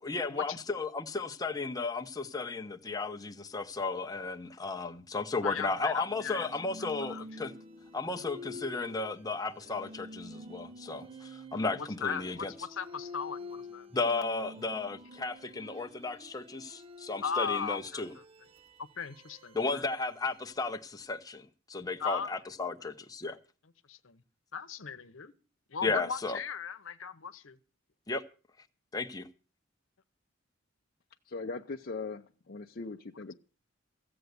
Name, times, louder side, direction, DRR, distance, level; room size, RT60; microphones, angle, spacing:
voice 1, 0.0-7.5 7.9-12.5 13.9-18.1 19.5-23.4 25.8-26.4 28.1-28.2 28.9-29.3, left 3 dB, 20° left, 0.8 m, -34 dB
voice 2, 5.4-6.5 7.0-7.2 11.8-13.9 17.2-18.2 18.8-19.9 22.0-22.4 22.8-22.9 23.2-23.4 23.9-24.2 24.5-25.3 25.7-27.6, left 6 dB, 85° left, 1.0 m, -38 dB
sound 1, 5.9-21.0, left 1 dB, 30° right, 0.6 m, -48 dB
voice 3, 31.3-33.3, left 3 dB, 50° left, 0.6 m, -40 dB
15.0 x 7.9 x 8.0 m
head